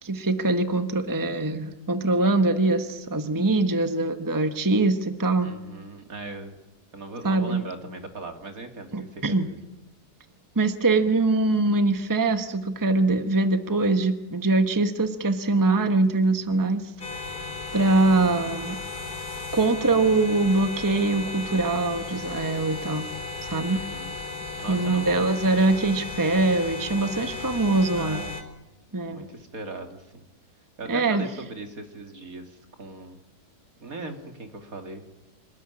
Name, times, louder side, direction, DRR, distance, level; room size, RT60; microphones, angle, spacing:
voice 1, 0.0-5.5 7.2-7.6 8.9-9.5 10.5-16.9 17.7-18.8 19.5-23.1 23.4-23.8 24.7-28.2 28.9-29.2 30.9-31.2, right 2 dB, 15° right, 8 dB, 1.3 m, -23 dB
voice 2, 5.4-6.5 6.9-9.6 23.7-24.2 24.6-25.4 28.0-28.4 29.1-30.2 30.8-33.2 33.8-35.0, right 3 dB, 60° right, 5 dB, 3.0 m, -39 dB
sound 1, 17.0-28.4, left 3 dB, 70° left, 4.2 m, -35 dB
26.5 x 19.5 x 9.9 m, 0.96 s
omnidirectional pair, 1.7 m